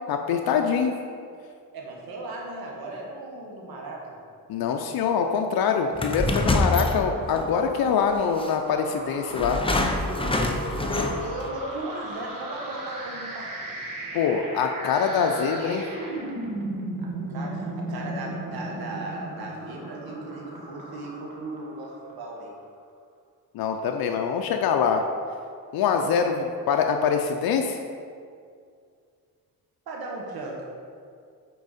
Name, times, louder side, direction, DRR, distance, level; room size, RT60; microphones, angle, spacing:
voice 1, 0.1-0.9 4.5-9.6 14.1-15.8 23.5-25.0 25.7-27.8, left 6 dB, 80° left, 4 dB, 0.6 m, -24 dB
voice 2, 1.7-4.2 10.0-13.7 17.0-22.5 29.9-30.6, right 2 dB, 85° right, -1 dB, 1.5 m, -37 dB
sound 1, 5.9-7.5 8.4-8.5 9.3-11.4, left 2 dB, 15° left, 0.7 m, -25 dB
sound 2, 6.0-22.4, right 1 dB, 60° right, 1.5 m, -37 dB
8.4 x 4.6 x 4.1 m, 2.2 s
cardioid pair, 85°, 36 cm